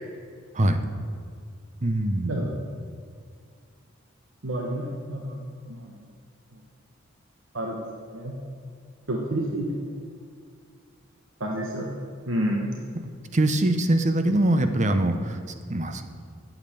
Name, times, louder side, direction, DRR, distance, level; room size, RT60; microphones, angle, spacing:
voice 1, 1.8-2.5 13.3-15.4 15.7-16.1, right 1 dB, 35° right, 8 dB, 0.7 m, -23 dB
voice 2, 4.4-5.4 5.7-5.9 7.5-7.8 8.1-8.3 9.1-9.8 11.4-11.9 12.3-12.7, right 1 dB, 70° right, -1 dB, 1.2 m, -29 dB
8.6 x 7.4 x 8.9 m, 2.2 s
head